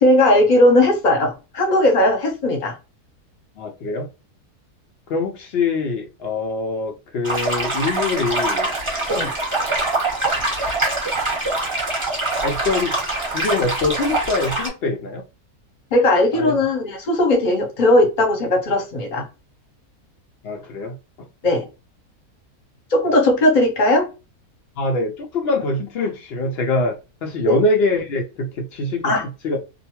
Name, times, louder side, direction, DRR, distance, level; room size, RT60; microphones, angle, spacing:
voice 1, 0.0-2.7 9.1-9.3 15.9-19.2 21.4-21.6 22.9-24.1 27.4-27.6 29.0-29.2, left 1 dB, 40° left, 0.7 m, -17 dB
voice 2, 3.6-4.1 5.1-8.7 12.4-12.9 13.2-15.2 16.3-16.5 20.4-20.9 24.8-27.0 27.2-29.1 29.4-29.6, left 3 dB, 85° left, 0.5 m, -23 dB
sound 1, 7.2-14.7, right 2 dB, 20° right, 1.0 m, -24 dB
2.5 x 2.1 x 2.9 m
omnidirectional pair, 1.6 m